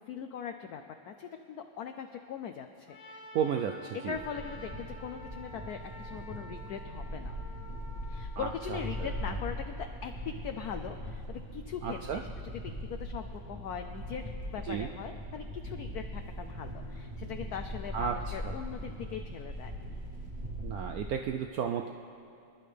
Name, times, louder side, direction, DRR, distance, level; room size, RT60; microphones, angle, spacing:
voice 1, 0.1-3.2 4.0-7.3 8.1-14.2 14.5-19.7, left 8 dB, 70° left, 5 dB, 0.9 m, -41 dB
Trumpet, 2.9-9.5, equal, 50° left, 1.6 m, -50 dB
voice 2, 3.3-4.2 8.4-9.1 11.8-12.2 14.7-14.9 17.9-18.1 18.4-18.5 20.6-21.9, right 8 dB, 85° right, 5 dB, 0.8 m, -33 dB
sound 1, 4.2-21.2, equal, 25° right, 1.8 m, -40 dB
25.0 x 11.0 x 3.4 m, 2.5 s
omnidirectional pair, 2.1 m